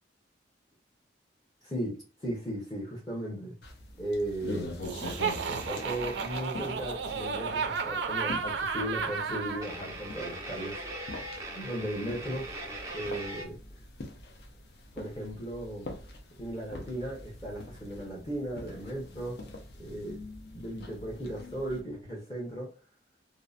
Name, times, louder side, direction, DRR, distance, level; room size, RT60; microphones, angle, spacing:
voice 1, 1.6-3.5 4.0-4.7 5.5-10.8 11.5-12.5 12.9-13.6 14.9-15.9 16.4-19.4 19.8-20.2 20.5-22.7, right 1 dB, 25° left, 0.7 m, -36 dB
sound 1, 3.6-21.8, left 2 dB, 65° left, 0.5 m, -44 dB
Laughter, 4.8-9.6, right 5 dB, 80° right, 0.4 m, -33 dB
sound 2, 5.2-6.5 7.6-7.7 8.1-8.2 9.6-13.4, right 1 dB, 15° right, 0.5 m, -41 dB
2.7 x 2.0 x 2.4 m
head